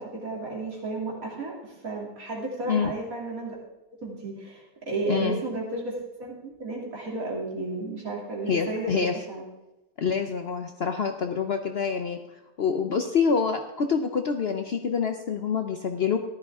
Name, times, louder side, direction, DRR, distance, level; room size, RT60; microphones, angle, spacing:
voice 1, 0.0-3.6 4.0-5.9 6.2-9.4, right 2 dB, 60° right, -3 dB, 3.5 m, -33 dB
voice 2, 5.1-5.4 8.5-9.1 10.0-12.2 12.6-16.2, left 6 dB, 55° left, 6 dB, 0.8 m, -26 dB
14.5 x 12.0 x 3.6 m, 0.99 s
omnidirectional pair, 1.6 m